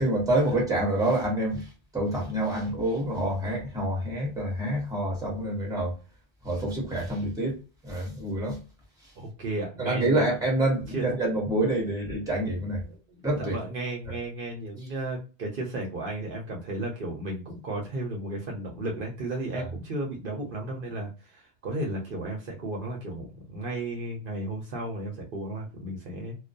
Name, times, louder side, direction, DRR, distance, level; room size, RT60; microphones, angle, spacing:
voice 1, 0.0-5.9 6.4-7.6 7.8-8.6 9.0-9.1 9.8-12.8 13.2-13.6 14.1-14.2 19.5-19.6, right 1 dB, 5° right, 0.9 m, -27 dB
voice 2, 9.2-10.3 10.9-11.1 12.8-13.0 13.4-26.4, right 2 dB, 60° right, 0.8 m, -34 dB
2.2 x 2.2 x 2.5 m
omnidirectional pair, 1.1 m